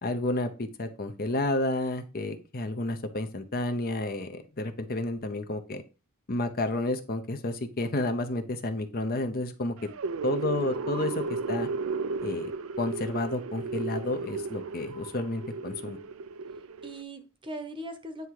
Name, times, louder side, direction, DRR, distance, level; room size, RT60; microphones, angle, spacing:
voice 1, 0.0-5.8 6.3-9.8 10.2-11.7 12.2-12.5 12.8-16.0, left 2 dB, 40° left, 8 dB, 0.8 m, -31 dB
sound 1, 9.8-17.0, right 4 dB, 65° right, 0.4 m, -34 dB
voice 2, 10.7-11.3 16.8-18.3, right 1 dB, 20° right, 8 dB, 0.9 m, -41 dB
9.4 x 3.5 x 4.7 m, 0.31 s
head